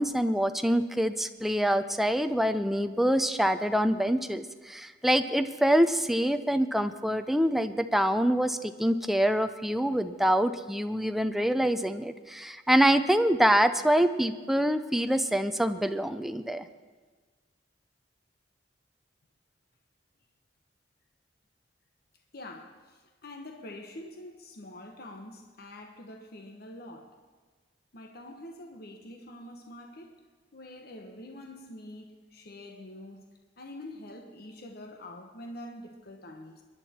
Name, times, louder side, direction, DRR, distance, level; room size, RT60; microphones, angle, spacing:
voice 1, 0.0-16.7, equal, ahead, 0.5 m, -25 dB
voice 2, 22.3-27.2 27.9-30.2 30.5-33.3 33.6-36.6, left 1 dB, 60° left, 1.1 m, -45 dB
22.5 x 11.0 x 4.3 m
head